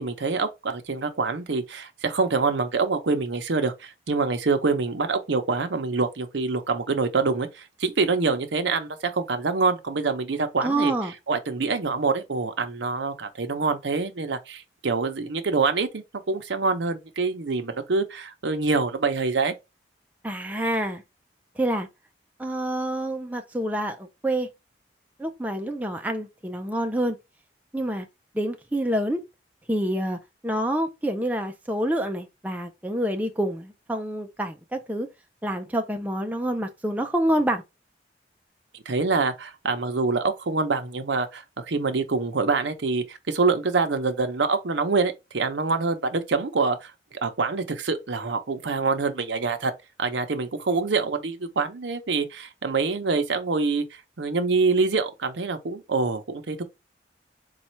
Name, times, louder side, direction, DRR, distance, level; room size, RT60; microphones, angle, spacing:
voice 1, 0.0-10.9 11.3-19.5 38.7-49.7 50.0-56.6, right 4 dB, 75° right, 0.7 m, -25 dB
voice 2, 10.6-11.1 20.2-21.0 21.6-21.9 22.4-24.5 25.2-27.2 27.7-28.1 28.3-29.2 29.7-35.1 35.4-37.6, right 1 dB, 10° right, 0.5 m, -27 dB
4.2 x 2.3 x 4.3 m
head